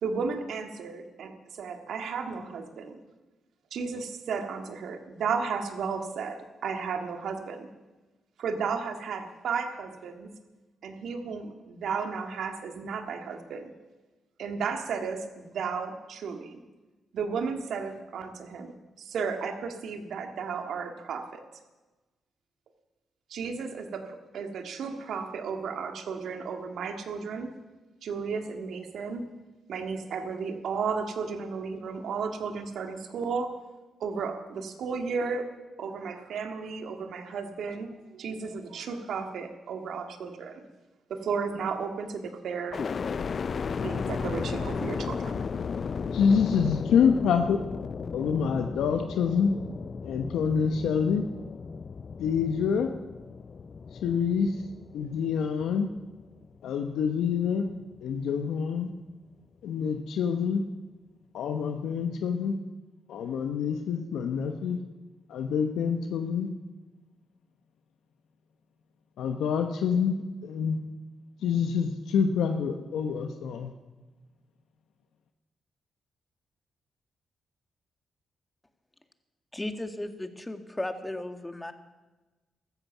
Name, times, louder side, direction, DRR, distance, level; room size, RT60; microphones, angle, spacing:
voice 1, 0.0-3.0 3.7-7.7 8.4-10.3 10.8-13.7 14.4-16.6 17.1-18.7 19.0-21.4 23.3-27.5 28.0-29.2 29.7-33.5 34.0-35.5 35.8-40.7 41.1-42.8 43.7-45.3, right 5 dB, 75° right, 5 dB, 2.0 m, -34 dB
sound 1, 42.7-56.7 57.2-58.0, left 5 dB, 55° left, 0.5 m, -35 dB
voice 2, 46.1-47.6 48.1-49.6 50.0-51.3 52.2-52.9 54.0-54.6 54.9-55.9 56.6-57.7 58.0-58.9 59.6-60.6 61.3-62.6 63.1-64.8 65.3-66.5 69.2-70.1 70.4-70.8 71.4-73.7, left 6 dB, 80° left, 6 dB, 1.0 m, -26 dB
voice 3, 79.5-81.7, left 1 dB, 15° left, 7 dB, 2.1 m, -35 dB
15.5 x 13.0 x 7.2 m, 1.2 s
hypercardioid pair, 45°, 0 cm